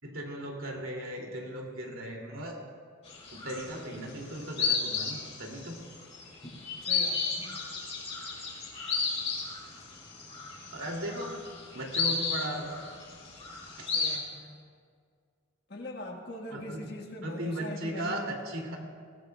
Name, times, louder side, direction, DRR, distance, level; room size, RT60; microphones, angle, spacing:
voice 1, 0.0-2.6 3.3-5.8 10.7-11.4 11.7-12.8 13.8-13.9 16.5-16.8 17.2-18.8, right 1 dB, 70° right, 0 dB, 2.7 m, -37 dB
sound 1, 3.1-3.9 4.2-14.2, left 5 dB, 30° left, 3.3 m, -33 dB
voice 2, 6.8-7.6 13.9-14.6 15.7-18.3, left 1 dB, 50° left, 1 dB, 1.6 m, -42 dB
22.0 x 18.0 x 2.4 m, 2.1 s
head